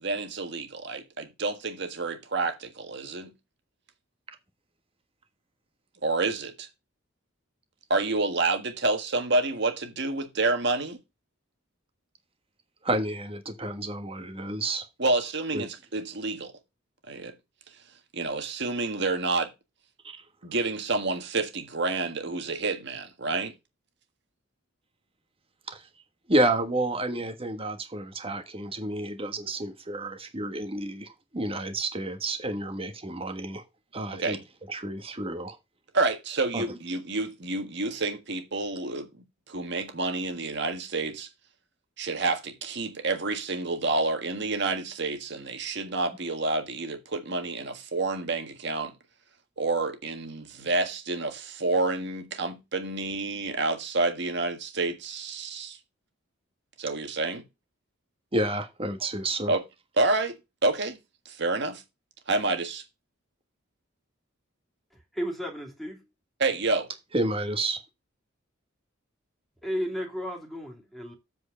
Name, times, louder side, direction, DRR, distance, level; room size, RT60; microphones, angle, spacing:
voice 1, 0.0-3.3 6.0-6.7 7.9-11.0 15.0-16.5 17.1-17.3 18.1-19.5 20.4-23.5 34.1-34.4 35.9-41.3 42.0-48.9 49.6-55.8 56.8-57.5 59.5-59.6 60.0-61.0 61.3-61.8 62.3-62.8 66.4-66.9, right 3 dB, 60° right, 1.7 m, -29 dB
voice 2, 12.8-14.8 15.5-15.6 25.7-25.8 26.3-33.6 33.9-34.4 34.7-35.5 36.5-36.6 58.3-59.5 67.1-67.8, right 1 dB, 30° right, 1.4 m, -30 dB
voice 3, 64.9-66.1 69.6-71.1, equal, ahead, 2.5 m, -34 dB
7.9 x 4.6 x 6.3 m
head